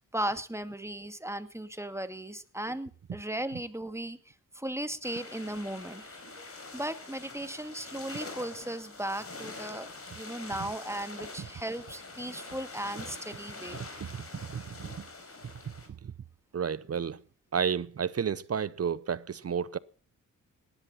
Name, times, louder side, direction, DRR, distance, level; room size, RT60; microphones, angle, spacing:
voice 1, 0.0-9.9 10.1-13.8, right 1 dB, 10° right, 2.1 m, -37 dB
sound 1, 5.0-15.9, left 3 dB, 45° left, 5.2 m, -45 dB
voice 2, 14.5-14.9 16.0-16.1 16.5-17.2 17.5-19.8, right 7 dB, 45° right, 0.8 m, -31 dB
18.5 x 11.5 x 5.9 m
cardioid pair, 50°, 33 cm